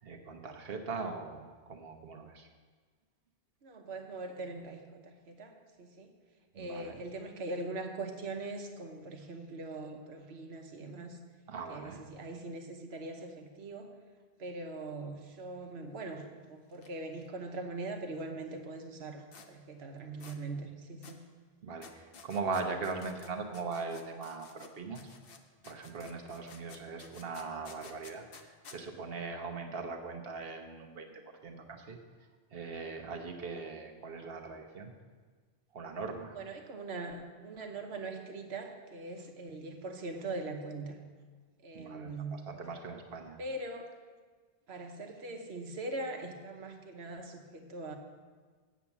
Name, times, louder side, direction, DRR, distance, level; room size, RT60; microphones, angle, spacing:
voice 1, 0.0-2.5 6.5-7.0 11.5-12.0 21.6-25.1 25.6-32.0 32.5-34.9 35.7-36.4 41.7-43.4, right 4 dB, 65° right, 3 dB, 1.2 m, -40 dB
voice 2, 3.6-6.1 6.5-11.2 11.7-14.0 14.4-21.3 36.3-41.0 41.6-42.4 43.4-43.9 44.7-48.0, right 2 dB, 90° right, 4 dB, 1.3 m, -41 dB
sound 1, 16.7-16.9 17.1-17.2 19.3-19.5 20.2-20.4 21.0-21.2 21.8-24.7 25.0-28.8, left 5 dB, 65° left, 1.0 m, -53 dB
8.3 x 7.3 x 7.2 m, 1.5 s
omnidirectional pair, 1.1 m